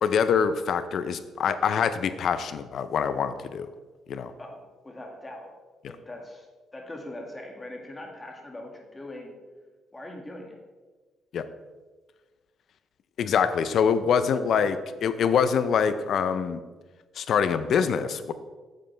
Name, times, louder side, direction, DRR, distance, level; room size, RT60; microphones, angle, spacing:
voice 1, 0.0-3.7 4.1-4.3 11.3-11.4 13.2-16.6 17.2-18.3, left 7 dB, 65° left, 12 dB, 0.5 m, -25 dB
voice 2, 4.8-5.5 5.9-6.5 6.7-9.4 9.9-10.6, left 1 dB, 20° left, 1 dB, 1.9 m, -41 dB
9.1 x 7.5 x 3.4 m, 1.3 s
cardioid pair, 90°, 0 cm